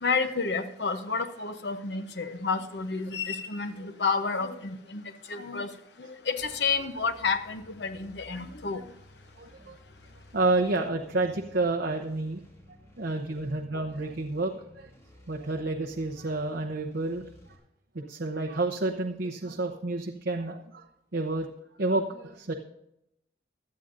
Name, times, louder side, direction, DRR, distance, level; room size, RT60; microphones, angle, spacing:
voice 1, 0.0-5.7 6.0-8.8, left 4 dB, 75° left, 8 dB, 0.9 m, -30 dB
sound 1, 6.4-17.6, left 1 dB, 15° left, 2.6 m, -55 dB
voice 2, 9.4-9.8 10.3-12.4 13.0-14.9 15.3-17.2 17.9-20.8 21.1-21.5 21.8-22.5, right 2 dB, 65° right, 2 dB, 0.8 m, -29 dB
17.0 x 11.5 x 2.6 m, 0.81 s
head